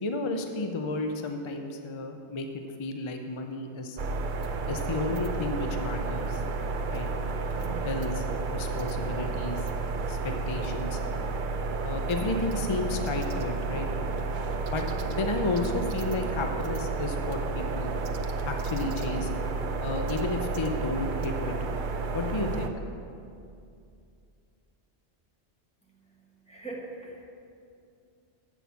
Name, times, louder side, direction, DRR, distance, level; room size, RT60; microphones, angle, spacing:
voice 1, 0.0-4.0 4.7-6.4 6.9-7.1 7.8-8.2 8.5-9.6 10.1-11.0 11.8-13.9 14.7-14.8 15.1-17.9 18.5-19.3 19.8-21.5 22.1-22.7, left 2 dB, 35° left, 4 dB, 0.5 m, -32 dB
sound 1, 4.0-22.7, right 3 dB, 55° right, 0.6 m, -31 dB
voice 2, 25.9-27.3, right 2 dB, 5° left, -3 dB, 1.2 m, -42 dB
8.1 x 5.9 x 7.0 m, 2.5 s
omnidirectional pair, 1.1 m